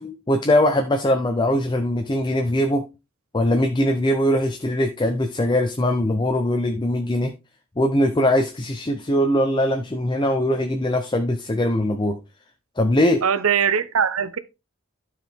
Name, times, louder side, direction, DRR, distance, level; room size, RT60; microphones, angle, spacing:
voice 1, 0.0-2.8 3.3-7.3 7.8-12.2 12.8-13.2, left 1 dB, 20° left, 0.7 m, -21 dB
voice 2, 13.2-14.4, right 7 dB, 75° right, 0.7 m, -21 dB
12.0 x 4.8 x 3.5 m
head